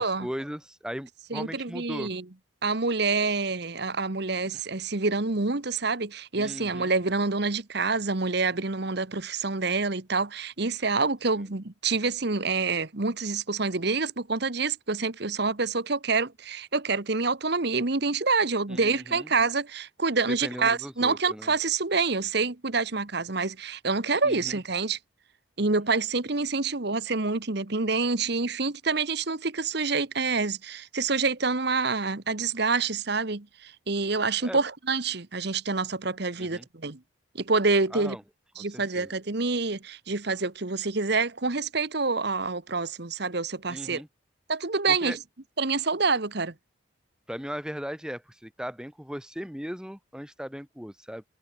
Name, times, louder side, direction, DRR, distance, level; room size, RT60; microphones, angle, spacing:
voice 1, 0.0-2.1 6.4-6.9 11.4-11.5 18.7-19.3 20.3-21.5 24.2-24.6 34.4-34.6 36.4-36.7 37.9-38.2 38.7-39.1 43.7-44.1 44.9-45.2 47.3-51.2, equal, 5° right, 2.2 m, -38 dB
voice 2, 1.3-2.2 2.6-25.0 25.6-37.0 37.3-38.2 38.6-44.0 44.5-45.2 45.6-46.5, right 4 dB, 55° right, 1.3 m, -27 dB
head